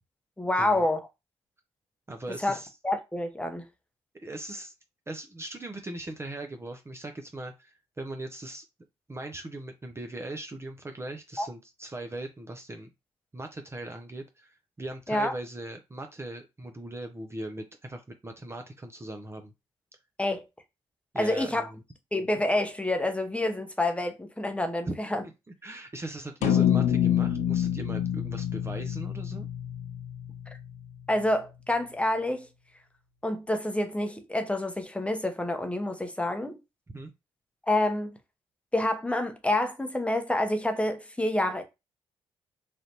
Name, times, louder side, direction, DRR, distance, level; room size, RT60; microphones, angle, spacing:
voice 1, 0.4-1.1 2.4-2.5 2.8-3.6 11.4-11.5 15.1-15.3 20.2-20.5 21.1-21.7 22.1-25.2 31.1-32.5 33.2-36.6 37.7-38.1 38.7-41.6, left 1 dB, 10° left, 0.9 m, -28 dB
voice 2, 2.1-2.7 4.2-4.7 5.1-8.6 9.1-12.9 13.3-19.5 21.1-21.8 24.9-25.0 25.2-25.3 25.6-29.5 36.9-37.1, right 2 dB, 25° right, 0.6 m, -39 dB
sound 1, 26.4-30.9, left 10 dB, 80° left, 0.4 m, -27 dB
3.3 x 2.5 x 2.9 m
supercardioid pair, 55°, 11 cm